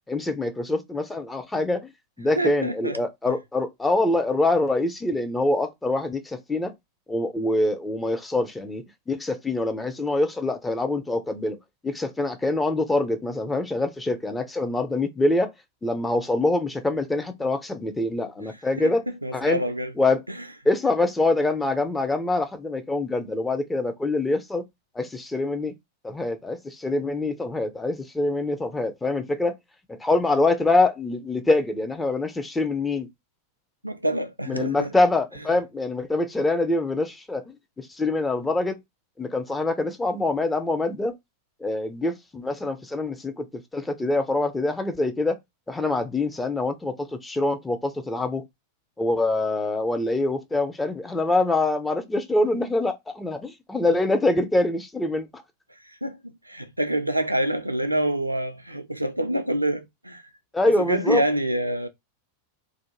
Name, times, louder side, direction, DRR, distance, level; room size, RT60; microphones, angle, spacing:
voice 1, 0.1-1.8 2.2-6.7 7.1-11.6 11.8-15.5 15.8-19.0 19.3-19.6 20.0-20.2 20.7-24.6 25.0-25.7 26.0-29.5 29.9-33.1 34.5-37.4 37.8-38.8 39.2-41.1 41.6-43.5 43.7-45.4 45.7-48.4 49.0-55.4 60.5-61.2, left 2 dB, 10° left, 0.5 m, -25 dB
voice 2, 2.3-3.0 18.8-18.9 19.2-19.9 20.3-20.5 33.8-34.9 55.8-56.2 56.5-60.2 60.8-61.9, right 1 dB, 85° right, 0.4 m, -26 dB
2.4 x 2.2 x 2.9 m
figure-of-eight pair, 90°, 0 cm